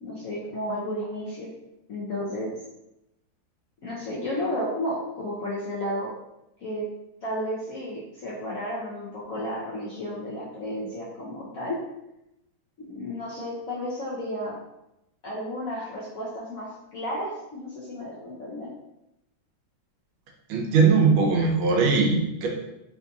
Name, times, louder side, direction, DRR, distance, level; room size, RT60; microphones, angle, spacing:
voice 1, 0.0-1.5 1.9-2.5 3.8-6.1 6.6-6.9 7.2-11.8 12.8-14.5 15.2-18.7, equal, 85° left, -7 dB, 0.7 m, -32 dB
voice 2, 20.5-22.5, right 4 dB, 75° right, 0 dB, 1.4 m, -20 dB
4.1 x 2.6 x 2.3 m, 0.88 s
omnidirectional pair, 2.3 m